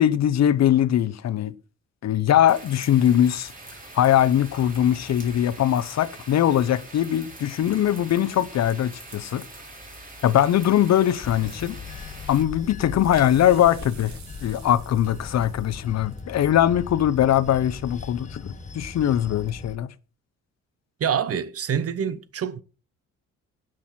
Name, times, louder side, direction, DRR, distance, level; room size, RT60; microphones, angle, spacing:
voice 1, 0.0-1.5 2.0-3.5 3.9-9.4 10.2-11.7 12.3-19.9, left 11 dB, 60° left, 0.8 m, -21 dB
sound 1, 2.5-12.4, right 2 dB, 25° right, 4.5 m, -43 dB
Bell / Train, 11.2-19.8, left 4 dB, 25° left, 1.3 m, -39 dB
sound 2, 12.1-17.6, right 6 dB, 70° right, 2.5 m, -50 dB
voice 2, 21.0-22.6, right 8 dB, 50° right, 1.0 m, -26 dB
16.5 x 6.2 x 4.4 m
cardioid pair, 90°, 30 cm